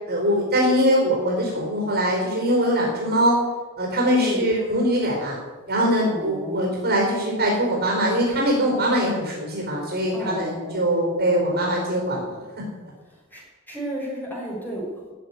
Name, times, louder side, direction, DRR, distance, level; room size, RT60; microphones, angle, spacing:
voice 1, 0.1-3.4 3.8-5.4 5.7-12.4, equal, 45° right, -1 dB, 4.6 m, -22 dB
voice 2, 4.1-4.5 6.0-6.6 10.1-10.8 13.1-15.1, right 1 dB, 10° left, -3 dB, 5.3 m, -32 dB
15.0 x 7.5 x 9.8 m, 1.3 s
head